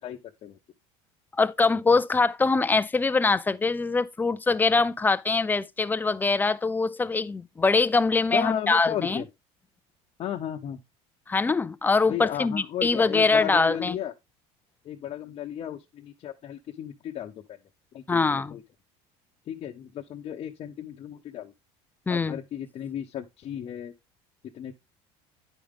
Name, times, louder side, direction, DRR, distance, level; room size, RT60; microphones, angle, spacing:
voice 1, 0.0-0.6 8.3-9.3 10.2-10.8 12.1-14.1 14.8-17.3 17.9-18.2 18.5-18.6 19.5-21.5 22.1-23.9 24.5-24.7, left 10 dB, 45° left, 0.8 m, -34 dB
voice 2, 1.4-9.2 11.3-14.0 18.1-18.6 22.1-22.4, left 4 dB, 15° left, 0.4 m, -23 dB
10.0 x 5.0 x 3.6 m
supercardioid pair, 115°, 14 cm